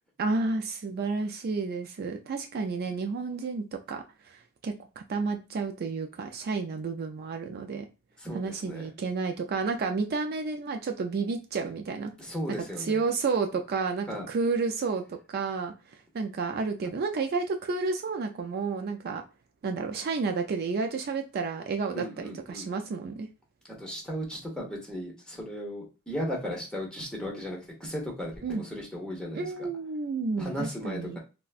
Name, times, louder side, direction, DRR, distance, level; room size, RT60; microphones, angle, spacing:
voice 1, 0.2-7.9 8.3-12.1 12.8-19.2 19.6-23.3 28.4-28.6 29.3-31.2, right 4 dB, 50° right, 5 dB, 0.4 m, -31 dB
voice 2, 8.2-8.9 12.2-13.0 14.1-14.3 21.9-22.7 23.8-28.3 28.6-29.7 30.4-31.2, equal, 5° left, -2 dB, 1.0 m, -36 dB
4.0 x 2.2 x 2.4 m, 0.30 s
head